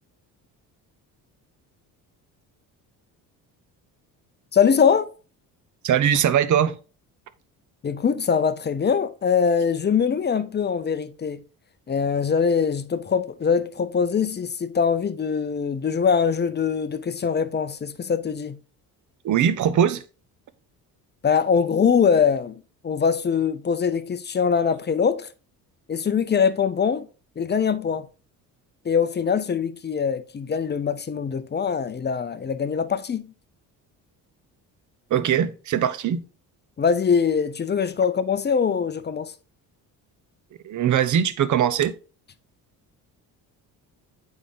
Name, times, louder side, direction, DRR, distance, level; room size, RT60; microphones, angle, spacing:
voice 1, 4.5-5.1 7.8-11.4 11.9-18.6 21.2-22.6 22.8-25.3 25.9-27.1 27.4-28.1 28.8-33.2 36.8-39.3, left 6 dB, 25° left, 0.5 m, -22 dB
voice 2, 5.8-6.7 19.2-20.0 35.1-36.2 40.6-41.9, right 9 dB, 50° right, 0.7 m, -21 dB
8.3 x 3.5 x 3.7 m
cardioid pair, 90°, 39 cm